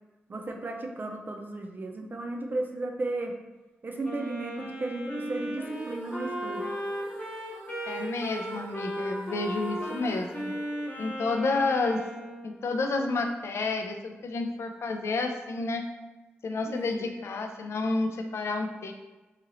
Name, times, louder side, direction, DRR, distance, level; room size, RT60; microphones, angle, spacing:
voice 1, 0.3-3.3 3.8-6.7 16.7-17.1, right 2 dB, 45° right, 2 dB, 0.4 m, -34 dB
Wind instrument woodwind instrument, 4.0-12.5, right 1 dB, 35° left, 1.0 m, -36 dB
sound 1, 5.6-11.7, equal, 10° right, 0.9 m, -45 dB
voice 2, 7.8-10.5 11.0-12.0 12.4-15.9 16.4-18.9, left 3 dB, 70° left, 5 dB, 0.4 m, -30 dB
2.9 x 2.8 x 2.6 m, 1.1 s
cardioid pair, 55°, 5 cm